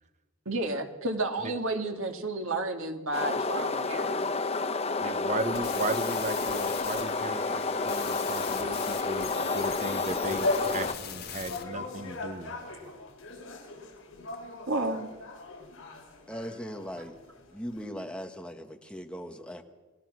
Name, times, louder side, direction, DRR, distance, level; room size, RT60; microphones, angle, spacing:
voice 1, 0.5-4.2 14.7-15.1, right 2 dB, 65° right, 4 dB, 2.5 m, -31 dB
sound 1, 3.1-10.9, left 3 dB, 30° left, 1.0 m, -30 dB
voice 2, 5.0-12.5, right 2 dB, 30° right, 9 dB, 1.2 m, -36 dB
sound 2, 5.4-11.6, left 8 dB, 45° left, 2.3 m, -41 dB
sound 3, 7.6-17.9, left 2 dB, 65° left, 5.6 m, -39 dB
voice 3, 16.3-17.1 17.5-19.6, equal, 5° left, 5 dB, 1.4 m, -39 dB
29.5 x 18.5 x 6.3 m, 1.2 s
head